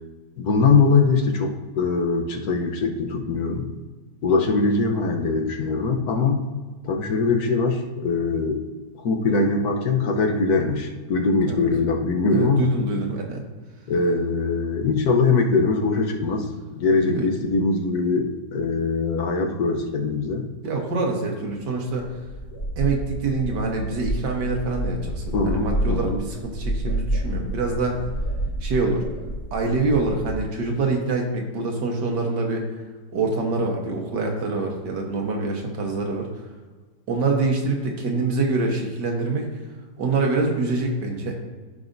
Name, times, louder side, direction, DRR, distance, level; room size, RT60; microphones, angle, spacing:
voice 1, 0.4-3.7 4.2-6.4 6.8-8.6 9.0-12.7 13.9-16.5 16.7-20.4 25.3-26.2, left 4 dB, 65° left, 3 dB, 1.3 m, -22 dB
voice 2, 12.3-13.4 17.0-17.3 20.6-22.1 22.8-28.0 28.6-29.0 29.5-32.7 33.1-36.3 37.1-39.5 40.0-41.3, right 3 dB, 90° right, 1 dB, 1.8 m, -25 dB
sound 1, 21.5-21.6 21.9-30.4, right 1 dB, 50° left, 3.1 m, -29 dB
14.0 x 5.1 x 2.6 m, 1.3 s
omnidirectional pair, 1.8 m